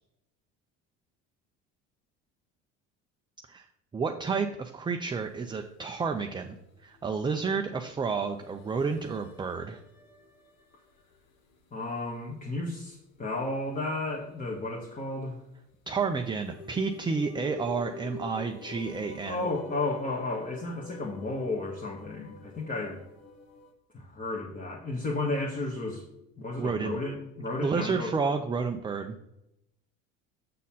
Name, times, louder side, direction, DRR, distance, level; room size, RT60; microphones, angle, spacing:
voice 1, 3.9-6.5 6.8-9.8 15.9-19.5 26.6-27.0 27.6-29.2, right 5 dB, 15° right, 5 dB, 0.4 m, -30 dB
sound 1, 5.1-11.7 12.0-13.0 13.6-14.4 16.0-23.7, left 4 dB, 65° left, 1.2 m, -47 dB
voice 2, 11.7-15.4 19.2-23.0 23.9-26.0 26.4-28.1, left 2 dB, 25° left, -2 dB, 1.4 m, -33 dB
7.4 x 4.1 x 5.5 m, 0.85 s
supercardioid pair, 100°, 34 cm